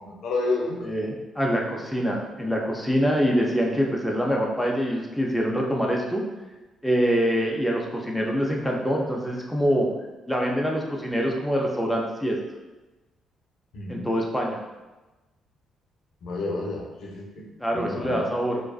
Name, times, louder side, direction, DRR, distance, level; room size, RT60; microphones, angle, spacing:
voice 1, 0.0-0.8 13.7-14.1 16.2-17.4 17.7-18.3, left 3 dB, 75° left, -1 dB, 0.5 m, -30 dB
voice 2, 0.8-6.2 6.8-9.9 10.3-12.4 13.9-14.6 17.6-18.6, equal, 5° left, -1 dB, 0.4 m, -25 dB
2.4 x 2.3 x 2.3 m, 1.1 s
cardioid pair, 90°, 0 cm